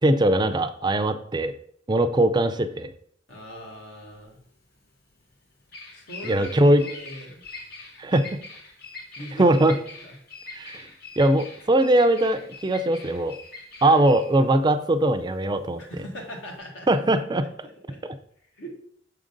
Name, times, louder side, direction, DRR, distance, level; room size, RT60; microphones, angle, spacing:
voice 1, 0.0-1.5 1.9-2.9 6.2-6.8 8.0-8.4 9.4-9.8 10.5-10.9 11.2-13.4 13.8-15.8 16.9-17.5 18.0-18.1, right 1 dB, 25° right, 8 dB, 0.4 m, -21 dB
voice 2, 3.3-4.4 5.9-6.5 6.8-7.4 9.2-10.2 10.5-10.8 15.8-16.9 17.4-18.0 18.5-18.7, equal, 80° left, -1 dB, 1.8 m, -40 dB
Bird vocalization bird call bird song, 3.3-16.6, left 3 dB, 55° left, 1.4 m, -44 dB
6.7 x 3.8 x 5.2 m, 0.64 s
head